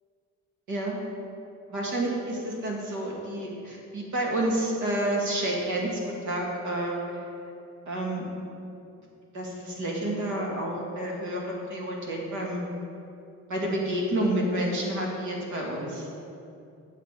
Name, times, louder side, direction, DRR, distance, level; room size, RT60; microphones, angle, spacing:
voice 1, 1.7-7.2 7.9-8.3 9.3-12.7 13.5-16.1, right 1 dB, 70° right, -2 dB, 2.2 m, -29 dB
9.0 x 6.9 x 5.0 m, 2.6 s
cardioid pair, 90°, 30 cm